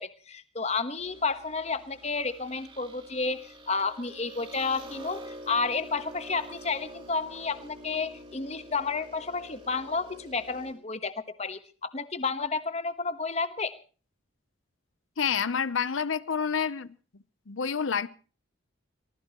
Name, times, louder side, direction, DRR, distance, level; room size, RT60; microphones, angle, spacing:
voice 1, 0.0-11.1 11.4-13.7, left 4 dB, 30° left, 1.2 m, -31 dB
sound 1, 1.0-10.7, equal, 25° right, 4.7 m, -47 dB
voice 2, 15.2-16.9 17.5-18.1, left 6 dB, 75° left, 0.7 m, -28 dB
24.0 x 19.0 x 3.0 m
head